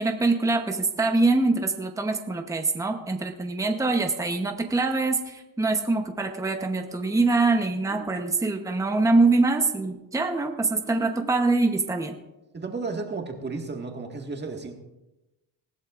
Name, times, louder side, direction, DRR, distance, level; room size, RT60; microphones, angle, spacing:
voice 1, 0.0-12.1, right 3 dB, 5° right, 5 dB, 0.9 m, -24 dB
voice 2, 10.8-11.3 12.5-14.7, right 3 dB, 20° right, 2 dB, 1.8 m, -34 dB
19.5 x 15.0 x 2.5 m, 0.99 s
cardioid pair, 130°, 45 cm